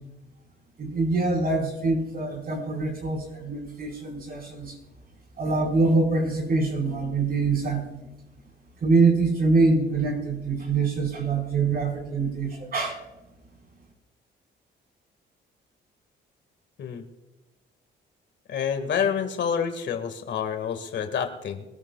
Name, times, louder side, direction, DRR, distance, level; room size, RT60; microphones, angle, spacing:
voice 1, 0.8-4.7 5.4-7.8 8.8-12.9, right 3 dB, 50° right, 2 dB, 4.6 m, -24 dB
voice 2, 18.5-21.7, left 7 dB, 65° left, 7 dB, 1.9 m, -28 dB
23.0 x 13.5 x 2.4 m, 1.1 s
cardioid pair, 90°, 20 cm